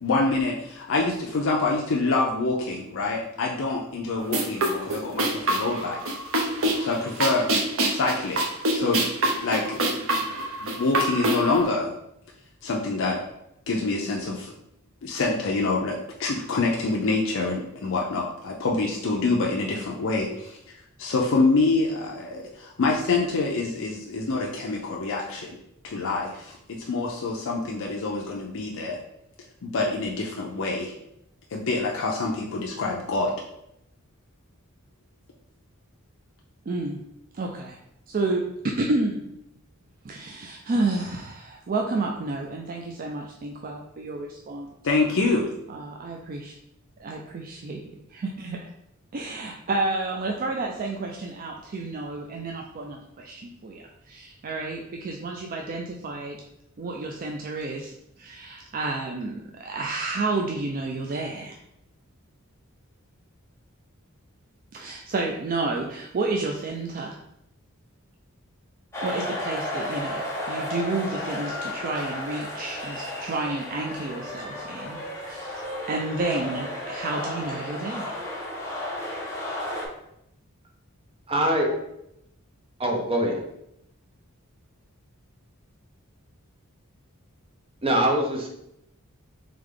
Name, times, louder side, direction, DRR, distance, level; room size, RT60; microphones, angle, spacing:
voice 1, 0.0-6.0 6.8-7.5 7.9-8.4 8.7-9.9 10.2-11.9 12.6-13.2 13.7-14.5 15.0-25.6 25.8-29.0 29.6-30.9 31.5-33.3 44.8-45.5, left 3 dB, 65° left, -1 dB, 0.5 m, -26 dB
sound 1, 4.2-11.6, right 1 dB, 65° right, 0.8 m, -26 dB
voice 2, 36.7-37.0 37.3-37.8 38.1-39.2 40.0-44.7 45.7-46.6 47.0-48.6 49.1-56.4 56.8-61.6 64.7-67.2 69.0-78.1, right 2 dB, 40° right, 1 dB, 0.4 m, -30 dB
sound 2, 68.9-79.9, left 1 dB, 15° left, 0.9 m, -33 dB
voice 3, 81.3-81.7 82.8-83.4 87.8-88.5, right 1 dB, 25° right, 1 dB, 0.7 m, -23 dB
3.5 x 3.3 x 3.8 m, 0.80 s
head